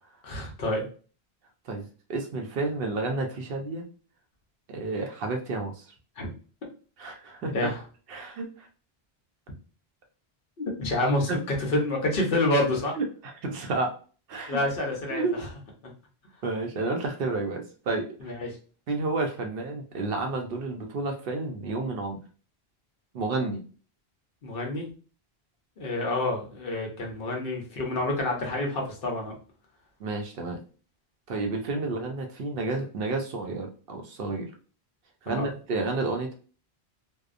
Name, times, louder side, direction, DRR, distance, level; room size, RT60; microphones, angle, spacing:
voice 1, 0.2-0.8 6.2-6.3 7.5-7.8 10.6-12.9 14.5-15.5 18.2-18.5 24.4-24.9 25.8-29.3 35.3-35.5, left 1 dB, 65° left, 0 dB, 0.9 m, -28 dB
voice 2, 1.7-3.9 4.7-5.9 7.0-7.5 8.1-8.7 11.3-11.4 13.0-13.1 13.4-13.9 14.3-14.6 15.1-15.4 16.4-18.3 18.9-22.2 23.1-23.6 30.0-30.6 31.3-34.5 35.2-36.3, right 3 dB, 65° right, 3 dB, 0.7 m, -30 dB
2.7 x 2.0 x 2.4 m, 0.38 s
omnidirectional pair, 1.1 m